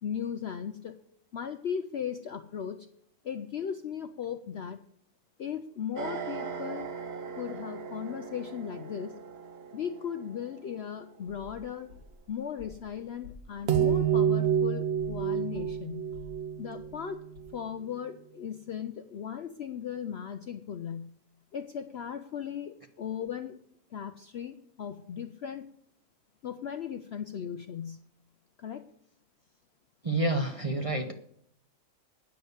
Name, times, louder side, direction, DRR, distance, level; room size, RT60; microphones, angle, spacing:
voice 1, 0.0-1.0 1.3-2.9 3.2-4.8 5.4-6.9 7.4-9.2 9.7-11.9 12.3-16.1 16.6-17.2 17.5-21.1 21.5-23.6 23.9-25.7 26.4-28.0 28.6-28.9, left 8 dB, 60° left, 8 dB, 0.7 m, -37 dB
sound 1, 6.0-10.3 13.7-17.6, right 8 dB, 50° right, 1.0 m, -31 dB
sound 2, 11.3-12.9 13.2-15.3 15.5-17.1 17.3-17.4, left 4 dB, 80° right, 3.8 m, -50 dB
voice 2, 30.0-31.1, right 2 dB, 30° right, 3 dB, 0.7 m, -28 dB
9.6 x 6.7 x 7.9 m, 0.68 s
omnidirectional pair, 1.6 m